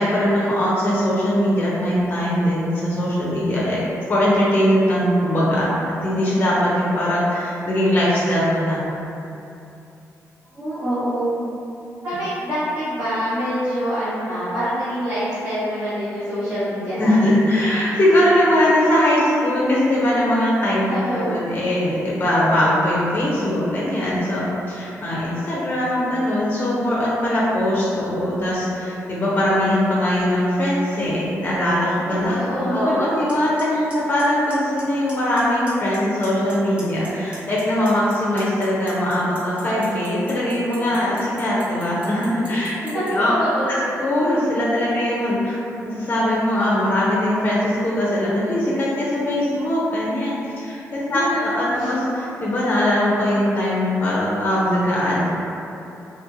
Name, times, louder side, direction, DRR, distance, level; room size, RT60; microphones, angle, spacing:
voice 1, 0.0-3.8 4.1-8.8 17.0-32.4 32.7-42.8 43.1-43.3 43.7-45.6 45.8-55.3, left 1 dB, 35° left, -7 dB, 0.6 m, -21 dB
voice 2, 10.5-11.3 12.0-17.4 20.9-21.4 32.0-33.1 33.7-33.8 42.8-43.8 51.0-51.4 51.7-51.9, equal, 35° right, -17 dB, 1.4 m, -25 dB
Clock, 33.3-33.4 33.6-33.9 34.2-34.8 35.1-35.4 35.7-36.5 36.8-43.1, right 1 dB, 20° right, 0.7 m, -40 dB
2.7 x 2.5 x 2.6 m, 2.8 s
cardioid pair, 95°, 6 cm